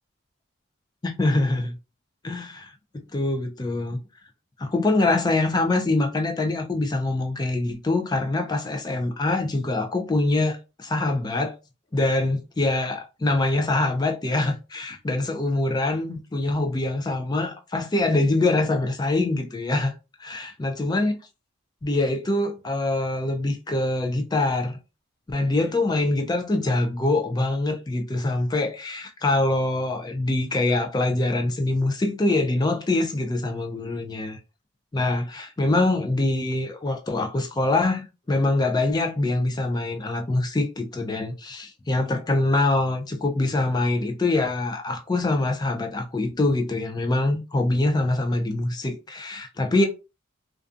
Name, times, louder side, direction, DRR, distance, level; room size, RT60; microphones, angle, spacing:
voice 1, 1.0-1.7 2.2-2.7 3.1-4.0 4.6-11.6 11.9-19.9 20.2-21.1 21.8-24.8 25.3-34.4 34.9-49.9, left 2 dB, 20° left, 0.3 m, -24 dB
2.5 x 2.2 x 2.4 m
head